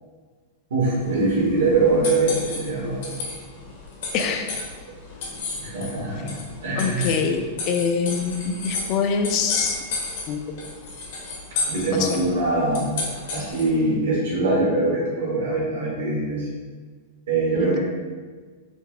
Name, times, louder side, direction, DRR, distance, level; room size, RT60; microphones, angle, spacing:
voice 1, 0.7-3.2 5.6-7.1 11.7-12.9 13.3-16.5 17.3-17.8, right 2 dB, 85° right, -6 dB, 1.4 m, -23 dB
sound 1, 1.0-13.8, left 3 dB, 65° left, 1.0 m, -33 dB
voice 2, 4.1-4.6 6.8-9.8 10.3-10.4 12.0-12.2 17.6-17.8, left 6 dB, 40° left, 5 dB, 0.4 m, -24 dB
4.1 x 2.1 x 3.2 m, 1.5 s
supercardioid pair, 145°, 0 cm